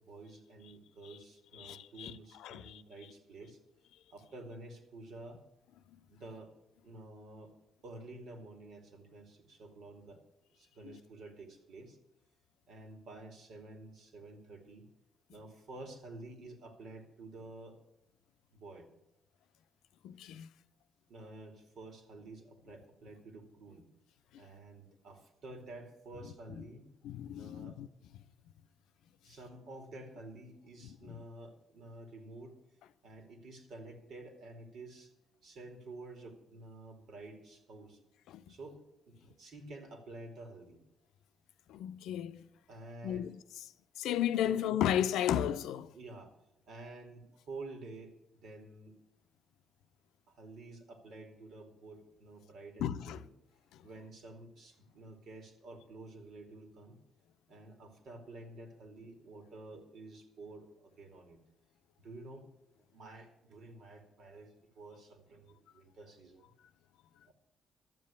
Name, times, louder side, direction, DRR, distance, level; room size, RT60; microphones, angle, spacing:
voice 1, 0.1-3.6 4.1-5.4 6.1-6.5 6.8-7.5 7.8-10.2 10.5-12.0 12.7-14.9 15.3-17.8 18.5-18.9 21.1-23.9 24.4-26.9 27.3-27.8 29.2-32.6 33.0-35.1 35.4-38.0 38.5-40.8 42.7-43.3 44.4-44.6 45.9-46.3 46.7-48.9 50.3-53.3 53.8-57.0 57.5-61.4 62.0-62.5 62.8-66.5 67.2-67.3, right 2 dB, 70° right, 2.6 m, -50 dB
voice 2, 1.6-2.1 2.4-2.8 20.0-20.5 27.0-27.9 30.8-30.9 38.3-38.4 41.7-42.5 43.0-43.4 44.0-45.9 52.8-53.2, left 10 dB, 85° left, 0.5 m, -34 dB
12.5 x 7.6 x 8.5 m
cardioid pair, 90°, 0 cm